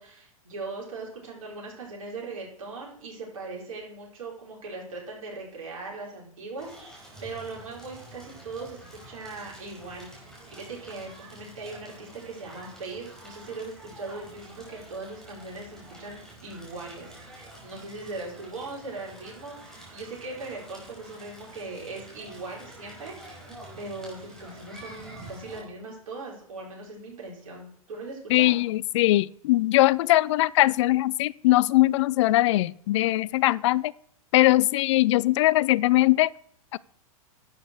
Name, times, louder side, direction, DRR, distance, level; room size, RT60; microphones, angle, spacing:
voice 1, 0.0-23.4 23.8-28.6, right 3 dB, 65° right, -2 dB, 5.2 m, -40 dB
Crackle, 6.6-25.6, right 1 dB, 5° left, 5.2 m, -47 dB
voice 2, 28.3-33.9 34.3-36.3 36.7-36.8, left 17 dB, 55° left, 22 dB, 0.4 m, -21 dB
11.5 x 8.7 x 4.7 m, 0.62 s
hypercardioid pair, 110°, 19 cm